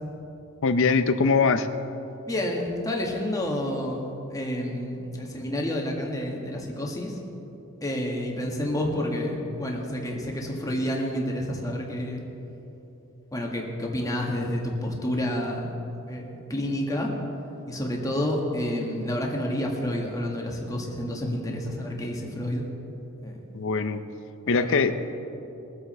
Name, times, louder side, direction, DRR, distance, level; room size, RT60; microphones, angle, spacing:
voice 1, 0.6-1.7 23.5-24.0 24.5-24.9, left 4 dB, 60° left, 10 dB, 0.6 m, -22 dB
voice 2, 2.3-7.2 7.8-12.2 13.3-15.7 16.1-17.1 17.7-22.6 23.2-23.4 24.5-24.9, left 1 dB, 15° left, -1 dB, 1.7 m, -29 dB
21.5 x 8.0 x 4.4 m, 2.9 s
head